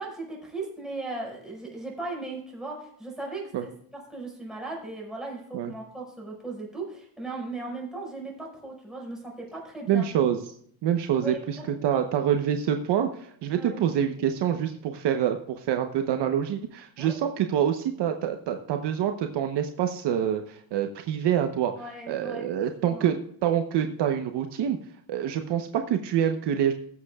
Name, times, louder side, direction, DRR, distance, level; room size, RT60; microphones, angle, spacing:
voice 1, 0.0-10.1 11.2-12.1 13.5-13.8 17.0-17.2 21.8-23.2, right 2 dB, ahead, -3 dB, 5.2 m, -38 dB
voice 2, 9.9-10.4 10.8-21.7 22.1-24.8 25.1-26.7, right 9 dB, 55° right, 6 dB, 1.0 m, -26 dB
21.5 x 7.7 x 2.4 m, 0.65 s
cardioid pair, 125°, 50 cm